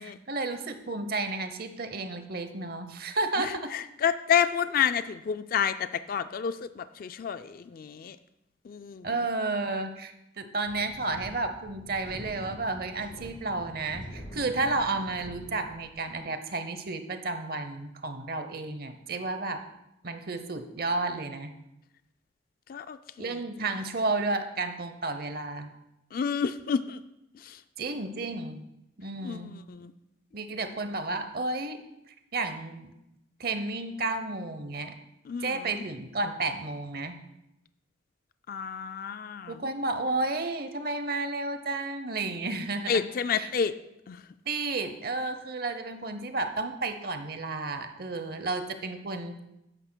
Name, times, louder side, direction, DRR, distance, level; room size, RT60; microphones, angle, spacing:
voice 1, 0.0-3.5 9.0-19.6 20.0-21.5 23.2-25.7 27.8-28.6 29.0-29.5 30.3-31.8 32.3-32.9 33.4-34.9 35.4-37.2 39.5-43.0 43.3-43.5 44.5-49.4, right 3 dB, 50° right, 9 dB, 0.8 m, -32 dB
voice 2, 3.4-8.2 8.7-9.1 22.7-23.3 26.1-27.0 27.4-27.6 29.2-29.9 35.3-35.8 38.5-39.6 42.9-43.7 44.1-44.2, left 7 dB, 50° left, 11 dB, 0.3 m, -30 dB
Wind, 10.6-16.2, equal, 65° left, 1.6 m, -45 dB
12.5 x 9.9 x 2.2 m, 0.86 s
head